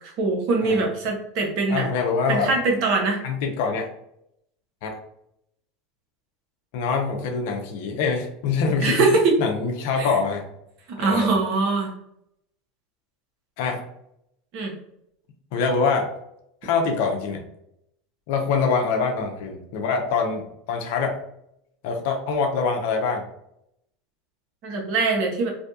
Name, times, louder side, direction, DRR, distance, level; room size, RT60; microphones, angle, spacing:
voice 1, 0.2-1.8 2.3-3.2 8.8-9.4 10.0-10.1 10.9-11.9 14.5-14.7 24.6-25.5, right 3 dB, 60° right, 0 dB, 0.9 m, -22 dB
voice 2, 1.7-2.5 3.2-3.9 4.8-5.0 6.7-9.0 9.4-10.5 11.0-11.3 13.6-13.8 15.5-16.1 16.6-17.4 18.3-21.2 21.8-23.2, left 5 dB, 65° left, 2 dB, 0.6 m, -24 dB
2.6 x 2.2 x 2.7 m, 0.76 s
hypercardioid pair, 95°, 0 cm